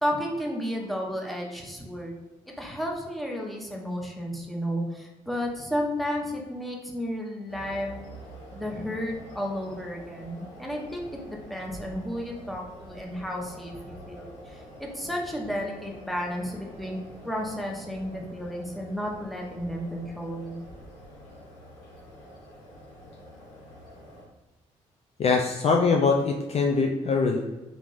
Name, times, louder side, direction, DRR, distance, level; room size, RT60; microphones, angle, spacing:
voice 1, 0.0-2.2 2.6-8.0 8.5-17.0 17.2-20.6, equal, ahead, -1 dB, 0.8 m, -32 dB
sound 1, 7.5-24.2, equal, 70° left, 0.8 m, -47 dB
voice 2, 25.2-27.4, left 4 dB, 35° left, 1 dB, 0.4 m, -23 dB
2.9 x 2.5 x 3.7 m, 1.1 s
figure-of-eight pair, 40°, 17 cm